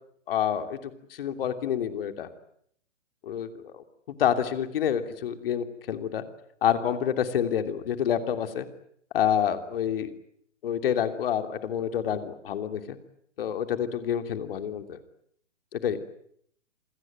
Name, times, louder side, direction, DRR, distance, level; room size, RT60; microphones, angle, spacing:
voice 1, 0.3-0.8 1.1-2.3 3.2-3.8 4.2-6.2 6.6-8.7 9.1-10.1 10.6-13.0 13.4-15.0 15.7-16.0, left 9 dB, 50° left, 8 dB, 3.1 m, -28 dB
27.5 x 22.0 x 9.2 m, 0.69 s
figure-of-eight pair, 125°, 37 cm